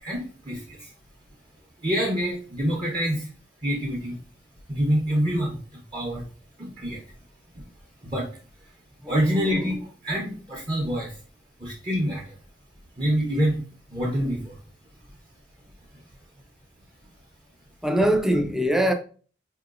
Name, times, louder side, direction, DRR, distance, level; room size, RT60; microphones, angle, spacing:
voice 1, 0.0-0.8 1.8-3.3 3.6-4.2 4.7-5.6 5.9-6.2 6.6-7.0 8.0-8.2 9.1-11.1 11.6-12.2 13.0-13.6 13.9-14.5, equal, 30° right, 0.7 m, -26 dB
voice 2, 9.0-9.6 17.8-18.9, equal, ahead, 0.3 m, -23 dB
4.7 x 2.8 x 2.4 m
head